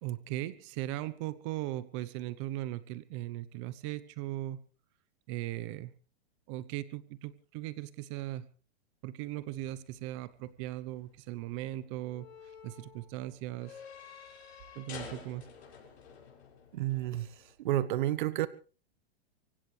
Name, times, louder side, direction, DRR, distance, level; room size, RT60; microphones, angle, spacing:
voice 1, 0.0-4.6 5.3-5.9 6.5-8.5 9.0-12.3 12.6-13.8 14.7-15.5, right 15 dB, 30° right, 17 dB, 0.9 m, -38 dB
sound 1, 9.2-17.5, left 6 dB, 90° left, 6.7 m, -51 dB
voice 2, 16.7-17.3 17.6-18.5, right 14 dB, 50° right, 17 dB, 1.1 m, -30 dB
25.0 x 16.5 x 3.3 m, 0.36 s
supercardioid pair, 165°, 32 cm